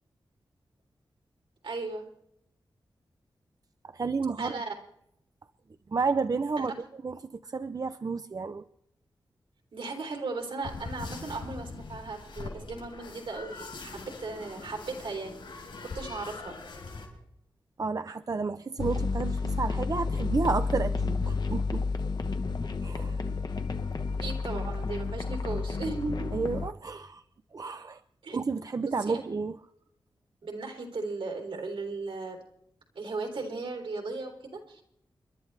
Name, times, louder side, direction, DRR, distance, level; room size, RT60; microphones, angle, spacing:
voice 1, 1.6-2.0 4.4-4.7 6.6-6.7 9.7-15.4 15.9-16.6 24.2-26.4 28.2-28.4 28.8-29.2 30.4-32.4 32.9-34.8, right 3 dB, 80° right, 2 dB, 3.3 m, -36 dB
voice 2, 3.9-4.6 5.9-6.7 7.0-8.6 17.8-21.8 22.8-23.2 26.3-27.2 27.5-28.0 28.3-29.5, right 4 dB, 45° right, 10 dB, 0.6 m, -31 dB
sound 1, 10.6-17.1, left 3 dB, 80° left, 6.1 m, -42 dB
sound 2, 18.8-26.7, left 4 dB, 55° left, 1.1 m, -31 dB
29.5 x 11.5 x 3.3 m, 0.73 s
cardioid pair, 70°, 9 cm